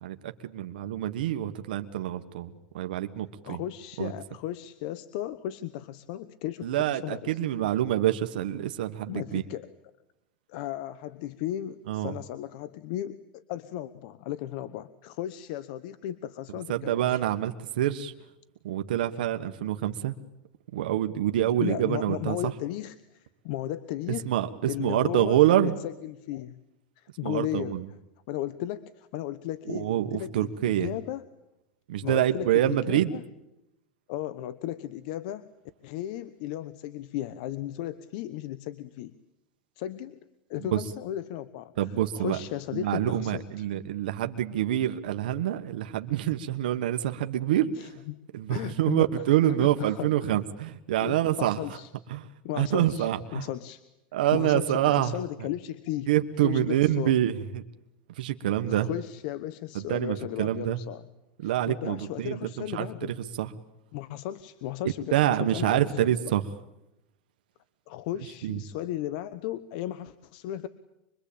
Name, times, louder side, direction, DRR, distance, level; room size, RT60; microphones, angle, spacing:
voice 1, 0.0-3.6 4.0-4.1 6.6-9.4 11.9-12.1 16.7-18.1 18.6-20.2 20.7-22.5 24.2-25.8 27.2-27.8 29.7-30.9 31.9-33.1 40.7-40.8 41.8-42.4 42.7-47.9 48.3-51.8 52.1-52.3 52.5-53.5 54.1-55.5 56.1-57.6 58.2-58.9 59.7-60.8 61.4-63.5 65.1-66.4 68.4-68.6, right 12 dB, 90° right, 7 dB, 1.4 m, -26 dB
voice 2, 3.4-7.4 9.1-9.7 10.5-17.2 21.6-23.0 23.4-24.3 24.7-26.6 27.0-27.8 28.3-31.2 32.0-33.2 34.1-35.5 35.8-39.1 39.8-40.2 40.5-41.7 42.1-43.6 47.8-48.2 48.5-49.1 49.5-50.4 51.0-51.9 52.4-53.8 54.3-56.1 56.4-57.1 58.7-61.0 61.4-63.1 63.9-66.1 67.9-70.7, left 13 dB, 65° left, 14 dB, 1.1 m, -35 dB
25.5 x 23.0 x 8.7 m, 0.89 s
supercardioid pair, 140°, 5 cm